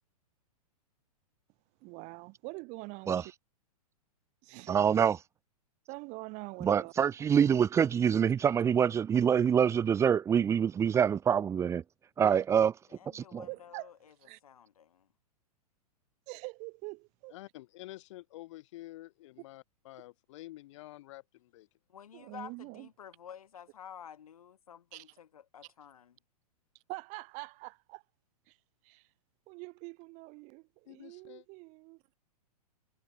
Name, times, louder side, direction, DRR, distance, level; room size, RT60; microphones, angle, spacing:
voice 1, 1.8-3.3 4.4-4.8 5.9-6.9 12.2-12.4 13.5-13.9 14.2-14.4 16.3-17.4 22.1-22.9 24.9-25.0 26.9-28.0 28.5-28.6 28.8-29.1 29.5-32.0, right 28 dB, 35° right, 3.4 m, -44 dB
voice 2, 4.7-5.2 6.6-11.8 12.2-12.7 13.1-13.5, right 8 dB, 15° right, 0.7 m, -26 dB
voice 3, 12.9-14.1 14.4-15.1 21.9-26.2, left 8 dB, 65° left, 6.8 m, -51 dB
voice 4, 17.3-21.7 30.9-31.5, left 17 dB, 50° left, 6.0 m, -49 dB
figure-of-eight pair, 110°, 20 cm